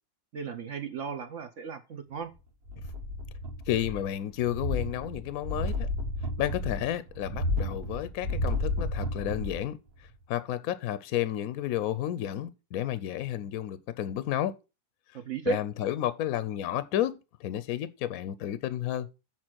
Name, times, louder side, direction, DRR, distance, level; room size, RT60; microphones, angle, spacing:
voice 1, 0.3-2.3 15.1-15.6, right 7 dB, 60° right, 1.0 m, -35 dB
sound 1, 2.7-4.1 4.4-9.7 10.1-10.2, left 1 dB, 75° right, 2.3 m, -32 dB
voice 2, 3.7-5.9 6.4-14.5 15.5-19.1, left 12 dB, 70° left, 1.0 m, -31 dB
7.4 x 4.7 x 6.1 m
omnidirectional pair, 1.7 m